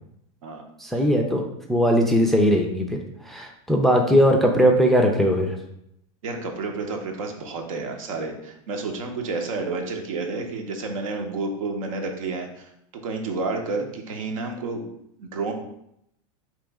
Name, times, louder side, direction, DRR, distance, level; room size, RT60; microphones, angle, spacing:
voice 1, 0.8-1.4 1.7-3.0 3.2-5.6, equal, ahead, 1 dB, 0.4 m, -19 dB
voice 2, 6.2-12.7 13.0-14.9 15.2-15.5, right 3 dB, 80° right, 3 dB, 0.8 m, -30 dB
4.0 x 3.0 x 3.5 m, 0.76 s
supercardioid pair, 140°, 17 cm